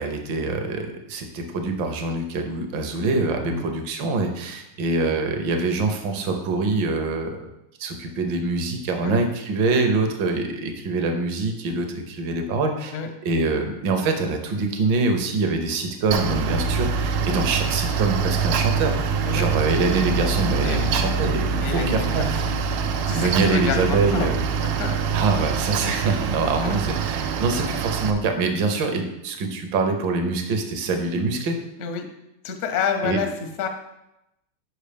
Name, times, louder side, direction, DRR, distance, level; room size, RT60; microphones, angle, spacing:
voice 1, 0.0-7.5 7.8-13.0 13.2-22.5 23.1-24.4 25.1-31.6 33.0-33.2, right 3 dB, 65° right, 5 dB, 1.5 m, -24 dB
Mechanical fan, 16.1-28.1, right 5 dB, 80° right, 1.5 m, -24 dB
voice 2, 20.6-21.1 21.6-22.6 23.1-24.3 24.6-25.0 31.8-32.1 32.4-33.3 33.6-33.7, left 6 dB, 70° left, 5 dB, 0.7 m, -29 dB
6.6 x 5.3 x 5.1 m, 0.91 s
omnidirectional pair, 2.3 m